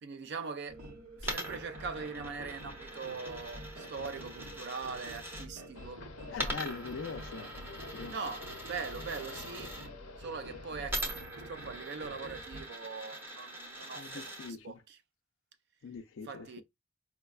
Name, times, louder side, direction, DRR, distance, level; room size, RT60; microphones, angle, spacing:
voice 1, 0.0-0.8 1.2-6.7 8.1-9.7 10.2-15.0 16.2-16.6, right 5 dB, 50° right, 0.4 m, -42 dB
sound 1, 0.7-12.6, right 1 dB, 90° right, 1.0 m, -49 dB
Coin (dropping), 1.2-5.5 6.3-9.9 10.9-14.5, right 1 dB, 10° right, 0.6 m, -42 dB
sound 2, 5.7-11.1, left 3 dB, 90° left, 0.7 m, -50 dB
voice 2, 6.3-7.5 7.9-8.1 13.9-14.7 15.8-16.5, left 5 dB, 65° left, 0.4 m, -42 dB
4.8 x 2.1 x 2.3 m
head